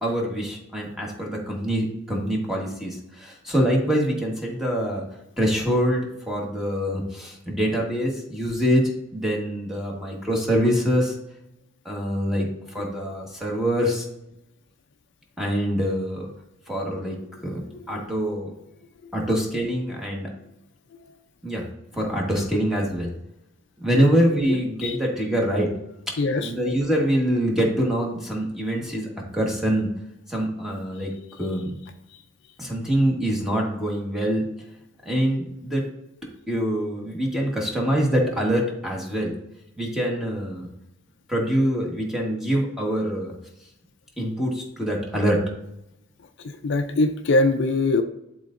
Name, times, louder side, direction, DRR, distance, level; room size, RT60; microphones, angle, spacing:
voice 1, 0.0-5.0 5.4-8.8 9.1-11.1 11.8-14.1 15.4-16.3 16.7-17.2 17.4-18.5 19.1-20.3 21.4-21.6 21.9-23.1 23.8-25.7 26.4-29.1 29.3-29.9 30.3-31.1 31.4-31.7 32.6-34.5 35.0-35.8 36.5-39.3 39.8-40.7 41.3-43.3 44.2-45.4, equal, ahead, -2 dB, 1.3 m, -24 dB
voice 2, 24.5-25.0 26.2-26.5 46.6-48.0, left 2 dB, 60° left, 6 dB, 0.5 m, -22 dB
11.0 x 3.8 x 2.5 m, 0.83 s
head